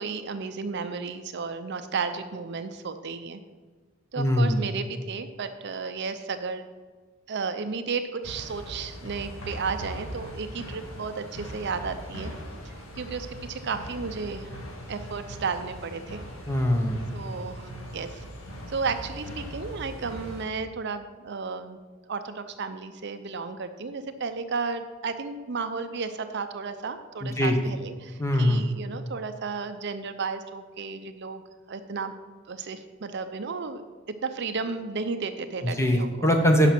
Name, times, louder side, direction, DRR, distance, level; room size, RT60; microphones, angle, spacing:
voice 1, 0.0-3.4 4.1-6.6 7.3-12.3 12.6-14.6 14.9-16.2 17.1-18.2 18.7-21.8 22.1-31.4 31.7-32.1 32.5-33.8 34.2-36.3, right 4 dB, 55° right, 9 dB, 0.6 m, -33 dB
voice 2, 4.2-4.6 16.5-17.0 27.2-27.6 28.2-28.7 35.8-36.7, left 1 dB, 15° left, 3 dB, 1.0 m, -22 dB
sound 1, 8.2-20.4, equal, 90° left, 1.9 m, -40 dB
10.0 x 5.8 x 6.0 m, 1.4 s
head